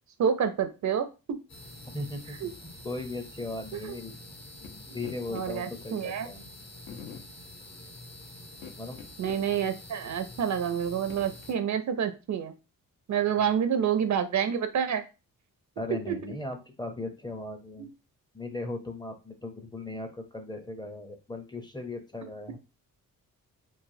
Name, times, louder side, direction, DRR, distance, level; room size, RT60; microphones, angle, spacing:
voice 1, 0.2-1.1 2.4-2.5 3.8-3.9 5.3-6.3 9.2-12.5 13.1-15.0 16.1-16.2 17.8-17.9, right 8 dB, 55° right, 9 dB, 0.4 m, -28 dB
sound 1, 1.5-11.5, left 1 dB, 50° left, 0.8 m, -47 dB
voice 2, 1.9-2.4 2.8-4.2 4.9-6.4 8.8-9.0 15.8-17.9 18.3-22.6, left 2 dB, 15° left, 5 dB, 0.5 m, -37 dB
sound 2, 4.6-4.7 5.0-5.5 6.3-6.4 6.9-7.3 8.5-9.4 9.8-9.9 10.5-11.5, left 6 dB, 80° left, 0.7 m, -45 dB
3.1 x 2.1 x 2.6 m, 0.29 s
cardioid pair, 100°, 34 cm